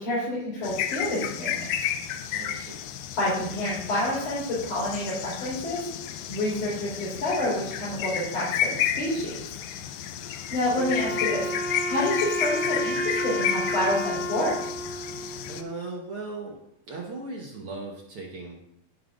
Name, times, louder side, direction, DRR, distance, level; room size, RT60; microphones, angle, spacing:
voice 1, 0.0-1.8 2.5-2.7 3.2-5.8 6.3-9.3 10.2-14.6, left 1 dB, 55° left, -10 dB, 5.0 m, -28 dB
sound 1, 0.6-15.6, left 10 dB, 80° left, 2.0 m, -32 dB
voice 2, 2.3-2.8 15.5-16.6 16.9-18.6, right 3 dB, 60° right, -1 dB, 1.5 m, -37 dB
Wind instrument woodwind instrument, 10.7-15.9, equal, ahead, 1.7 m, -31 dB
16.5 x 5.6 x 2.5 m, 0.74 s
omnidirectional pair, 3.7 m